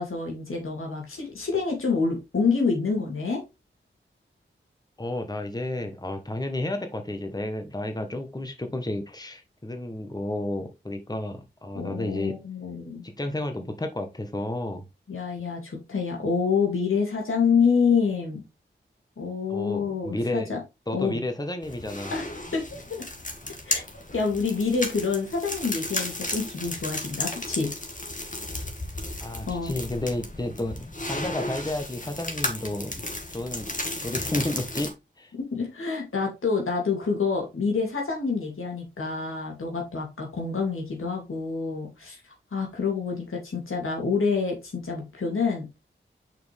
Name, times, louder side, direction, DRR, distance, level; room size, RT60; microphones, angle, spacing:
voice 1, 0.0-3.4 11.8-13.0 15.1-18.4 19.2-20.6 20.9-21.2 22.1-22.3 22.5-23.0 23.6-23.8 24.1-27.7 29.5-29.7 35.5-42.2 42.5-45.7, left 5 dB, 85° left, 0 dB, 2.5 m, -27 dB
voice 2, 5.0-12.3 13.0-14.8 19.5-20.5 20.9-22.1 29.2-33.0 33.3-33.7 34.0-35.3, left 1 dB, 20° left, 6 dB, 1.2 m, -31 dB
sound 1, 21.6-34.9, left 2 dB, 40° left, 2.1 m, -34 dB
6.0 x 5.2 x 3.4 m, 0.24 s
cardioid pair, 45°, 21 cm